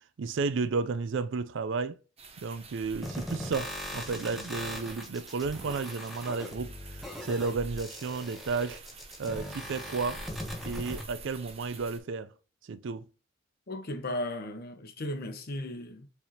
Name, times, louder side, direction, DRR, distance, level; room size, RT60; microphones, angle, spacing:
voice 1, 0.2-2.0 2.4-8.8 9.2-10.2 10.6-12.3 12.7-13.1, right 4 dB, 65° right, 0.4 m, -32 dB
sound 1, 2.2-12.0, right 3 dB, 30° right, 0.8 m, -48 dB
sound 2, 3.0-11.0, equal, ahead, 0.9 m, -40 dB
voice 2, 13.7-16.1, left 1 dB, 50° left, 0.8 m, -36 dB
4.7 x 3.4 x 2.8 m
head